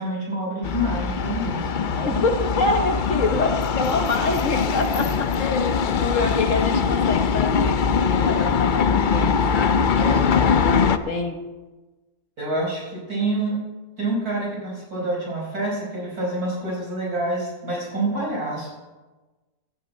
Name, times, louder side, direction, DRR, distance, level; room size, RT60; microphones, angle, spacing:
voice 1, 0.0-2.2 10.0-10.5 12.4-13.7 14.0-18.7, right 1 dB, 65° right, -3 dB, 5.7 m, -27 dB
sound 1, 0.6-11.0, left 6 dB, 75° left, 0.4 m, -22 dB
voice 2, 2.0-11.4, left 3 dB, 55° left, 5 dB, 1.4 m, -26 dB
16.5 x 13.0 x 4.3 m, 1.2 s
omnidirectional pair, 1.7 m